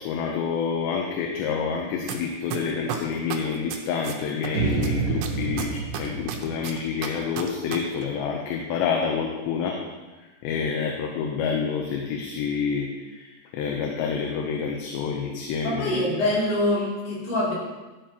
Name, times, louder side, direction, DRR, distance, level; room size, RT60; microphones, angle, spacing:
voice 1, 0.0-9.8 10.2-16.1, left 6 dB, 80° left, 0 dB, 3.0 m, -28 dB
sound 1, 2.1-2.2 2.5-4.5 4.8-7.8 8.0-8.1, right 10 dB, 85° right, 3.1 m, -32 dB
sound 2, 4.5-7.7, right 6 dB, 60° right, 2.8 m, -29 dB
voice 2, 15.6-17.5, left 1 dB, 65° left, -7 dB, 4.8 m, -24 dB
12.0 x 7.5 x 2.9 m, 1.2 s
omnidirectional pair, 5.1 m